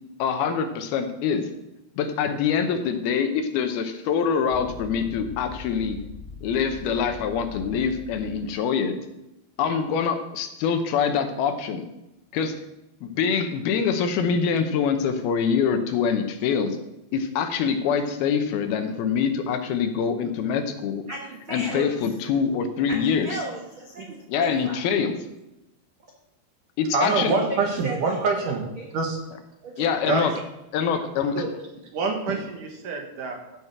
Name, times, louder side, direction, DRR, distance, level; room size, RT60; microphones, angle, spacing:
voice 1, 0.2-1.5 2.0-6.0 6.4-9.0 9.6-11.9 12.3-12.6 13.2-16.7 17.1-21.0 21.5-23.4 24.3-25.1 26.8-27.3 29.8-30.3 30.7-31.4, left 6 dB, 75° left, 7 dB, 2.7 m, -24 dB
sound 1, 4.5-8.5, left 3 dB, 45° right, 3.9 m, -41 dB
voice 2, 21.1-21.9 22.9-24.8 27.0-28.3 28.8-28.9 29.6-29.9, right 1 dB, 80° right, -1 dB, 1.1 m, -35 dB
voice 3, 26.9-29.2 30.1-30.4 31.3-31.5 31.9-33.6, right 4 dB, 60° right, 2 dB, 2.7 m, -26 dB
14.0 x 6.2 x 6.0 m, 0.92 s
omnidirectional pair, 4.7 m